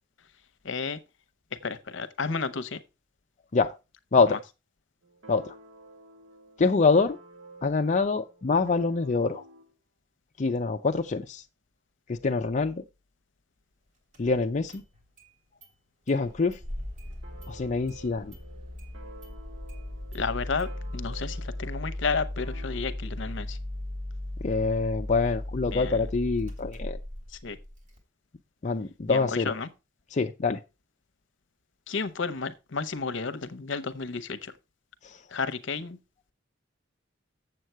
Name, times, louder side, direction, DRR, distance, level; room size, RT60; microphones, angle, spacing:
voice 1, 0.6-1.0 1.6-2.8 4.3-4.4 20.1-23.6 25.7-25.9 27.3-27.6 29.1-29.7 31.9-34.5 35.3-36.0, left 4 dB, 70° left, 0.8 m, -32 dB
voice 2, 4.1-4.4 5.3-5.5 6.6-7.2 7.6-9.4 10.4-11.4 12.1-12.8 14.2-14.8 16.1-16.6 17.5-18.3 24.4-27.0 28.6-29.5 30.1-30.6 35.0-35.2, left 4 dB, 40° left, 0.5 m, -25 dB
sound 1, 5.0-9.7 17.2-22.8, right 2 dB, 70° right, 1.8 m, -51 dB
Engine starting, 14.1-14.2 14.7-15.3 15.6-15.7 16.1-28.0, left 1 dB, 40° right, 3.0 m, -37 dB
7.8 x 7.4 x 4.5 m
head